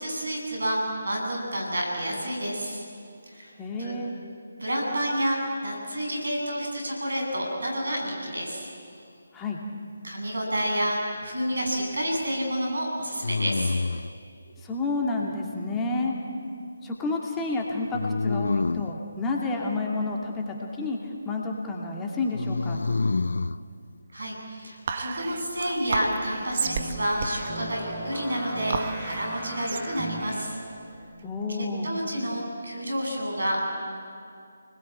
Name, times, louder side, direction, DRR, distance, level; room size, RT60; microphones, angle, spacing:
voice 1, 0.0-2.8 3.2-3.5 3.8-3.9 4.6-8.7 10.0-13.8 24.1-30.6 31.5-33.8, equal, 75° right, 0 dB, 7.9 m, -29 dB
voice 2, 3.6-4.1 9.3-9.6 14.6-16.1 16.8-22.8 31.2-31.9, left 3 dB, 10° left, -1 dB, 2.4 m, -30 dB
sound 1, 10.5-11.2 13.2-14.2 17.9-19.0 22.3-23.6, left 3 dB, 70° left, 0.6 m, -28 dB
Whispering, 24.9-31.5, right 5 dB, 45° right, 1.4 m, -34 dB
sound 2, 26.3-30.8, right 1 dB, 15° right, 5.7 m, -38 dB
29.5 x 20.0 x 8.9 m, 2.4 s
figure-of-eight pair, 150°, 0 cm